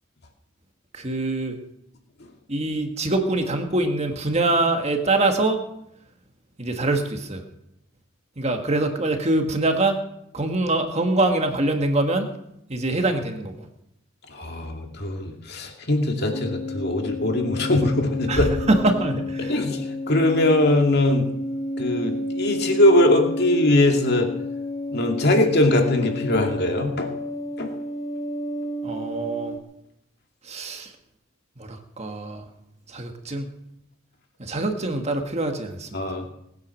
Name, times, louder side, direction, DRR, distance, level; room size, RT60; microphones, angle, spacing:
voice 1, 0.9-1.6 2.5-5.6 6.6-7.4 8.4-10.0 10.3-12.3 12.7-13.7 18.3-19.6 28.8-29.6 30.4-30.9 31.6-32.4 32.9-33.5 34.4-36.1, right 2 dB, 30° right, 5 dB, 1.7 m, -24 dB
voice 2, 14.3-18.5 19.4-21.3 21.8-24.3 24.9-27.1 27.6-27.7 35.9-36.3, left 1 dB, 55° left, 3 dB, 2.3 m, -21 dB
sound 1, 16.3-29.6, left 2 dB, 35° left, 1.0 m, -31 dB
20.0 x 9.5 x 6.4 m, 0.79 s
head